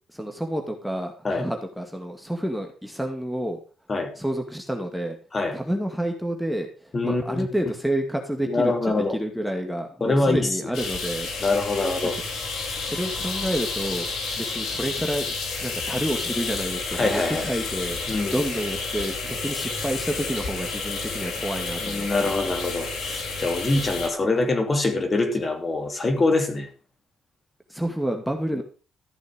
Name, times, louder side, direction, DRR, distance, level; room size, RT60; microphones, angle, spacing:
voice 1, 0.1-3.6 4.2-5.2 5.5-11.3 12.8-14.1 14.4-15.3 15.6-18.0 18.3-22.6 27.7-28.6, equal, ahead, 2.1 m, -29 dB
voice 2, 6.9-7.5 8.5-9.2 10.0-10.5 11.4-12.2 17.0-17.5 18.1-18.4 21.8-26.7 28.5-28.6, left 2 dB, 30° left, 3.0 m, -24 dB
sound 1, 10.7-24.1, left 3 dB, 75° left, 4.3 m, -31 dB
14.5 x 6.4 x 6.2 m
cardioid pair, 90°, 0 cm